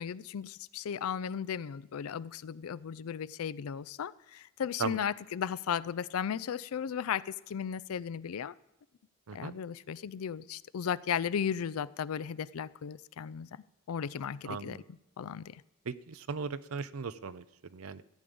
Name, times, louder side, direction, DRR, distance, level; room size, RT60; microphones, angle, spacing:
voice 1, 0.0-8.5 9.3-13.5 13.9-14.8 15.2-15.6, left 7 dB, 85° left, 16 dB, 0.4 m, -35 dB
voice 2, 14.4-14.8 15.9-18.0, right 5 dB, 80° right, 15 dB, 0.6 m, -38 dB
14.5 x 5.3 x 8.5 m, 0.90 s
head